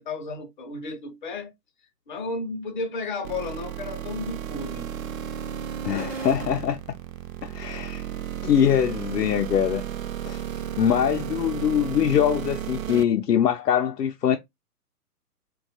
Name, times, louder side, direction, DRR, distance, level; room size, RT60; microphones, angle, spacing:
voice 1, 0.0-1.5 2.1-4.9, left 3 dB, 35° left, 0.5 m, -33 dB
sound 1, 3.2-13.0, right 10 dB, 60° right, 0.5 m, -33 dB
voice 2, 5.8-6.8 7.4-8.0 8.4-9.8 10.3-10.4 10.8-14.4, left 9 dB, 85° left, 0.6 m, -23 dB
2.6 x 2.2 x 2.7 m
figure-of-eight pair, 130°, 47 cm